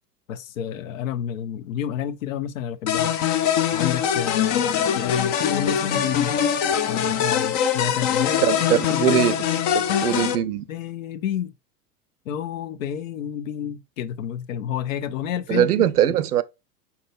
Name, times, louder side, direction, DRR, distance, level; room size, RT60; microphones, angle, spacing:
voice 1, 0.3-3.1 3.7-6.3 6.9-9.2 10.7-11.5 12.2-15.7 16.0-16.1, left 9 dB, 60° left, 0.7 m, -29 dB
sound 1, 2.9-10.4, left 9 dB, 25° left, 0.4 m, -23 dB
voice 2, 8.4-9.4 9.7-10.6 15.5-16.4, right 11 dB, 75° right, 0.6 m, -21 dB
5.6 x 3.8 x 2.4 m
figure-of-eight pair, 90°, 47 cm